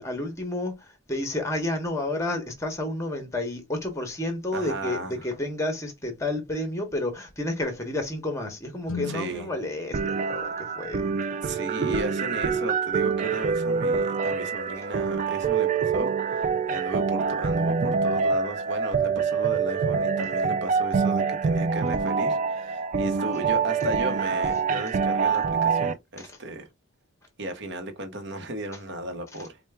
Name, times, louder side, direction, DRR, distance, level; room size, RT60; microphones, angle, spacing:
voice 1, 0.0-11.1 26.2-26.3, left 1 dB, 15° left, 0.9 m, -31 dB
voice 2, 4.5-5.2 9.1-9.5 11.4-26.7 27.4-29.6, right 1 dB, 55° right, 0.9 m, -35 dB
Guitar, 8.8-11.4, left 6 dB, 70° left, 0.5 m, -40 dB
sound 1, 9.9-25.9, right 5 dB, 35° right, 0.3 m, -25 dB
4.4 x 2.2 x 3.3 m
head